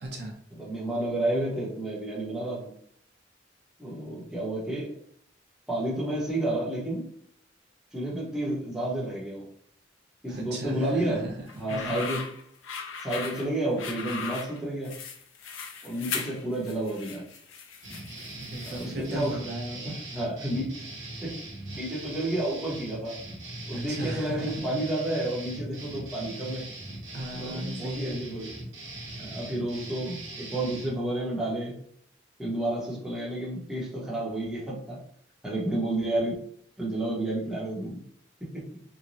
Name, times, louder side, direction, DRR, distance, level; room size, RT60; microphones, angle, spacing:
voice 1, 0.0-0.3 10.3-12.0 18.4-20.0 23.7-24.7 27.1-28.2, right 1 dB, 55° right, -1 dB, 0.6 m, -37 dB
voice 2, 0.5-2.7 3.8-4.9 5.7-7.0 7.9-9.5 10.2-11.3 11.6-12.2 13.0-15.0 15.8-17.3 18.6-19.4 19.8-20.7 21.2-21.4 21.7-23.2 23.7-26.7 27.4-28.5 29.2-31.8 32.4-35.0 35.4-36.4 36.8-38.0 38.5-38.6, right 1 dB, 5° right, -7 dB, 0.8 m, -30 dB
sound 1, 11.5-19.0, left 5 dB, 85° left, 0.5 m, -38 dB
sound 2, 17.8-31.0, right 2 dB, 75° right, 0.9 m, -41 dB
3.0 x 2.1 x 2.6 m, 0.64 s
head